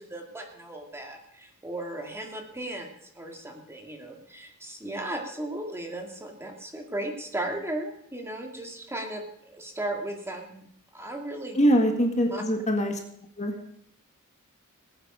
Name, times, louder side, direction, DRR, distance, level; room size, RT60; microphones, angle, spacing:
voice 1, 0.0-2.9 3.1-10.5 10.9-11.6 12.3-12.4, right 1 dB, 10° right, 2 dB, 2.0 m, -36 dB
voice 2, 11.6-13.0 13.4-13.5, equal, 30° left, 3 dB, 1.8 m, -23 dB
19.5 x 9.0 x 5.0 m, 0.69 s
head